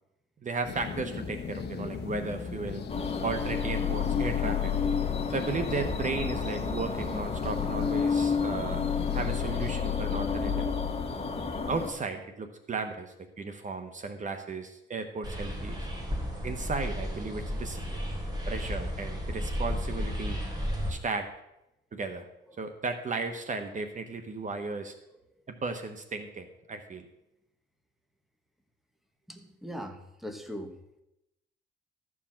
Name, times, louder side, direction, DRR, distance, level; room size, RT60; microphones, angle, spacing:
voice 1, 0.4-2.8 3.2-4.7 5.3-8.8 9.1-10.7 11.7-15.9 16.4-18.0 18.5-20.4 20.9-21.3 21.9-22.3 22.6-24.9 25.5-27.0, right 4 dB, 40° right, 7 dB, 1.2 m, -35 dB
sound 1, 0.6-9.7, left 5 dB, 55° left, 1.2 m, -39 dB
sound 2, 2.9-11.9, left 6 dB, 30° left, 1.6 m, -30 dB
sound 3, 15.2-20.9, equal, 20° right, 3.3 m, -33 dB
voice 2, 29.3-30.8, equal, ahead, 5 dB, 1.5 m, -41 dB
14.0 x 4.9 x 7.5 m, 0.89 s
cardioid pair, 90°, 20 cm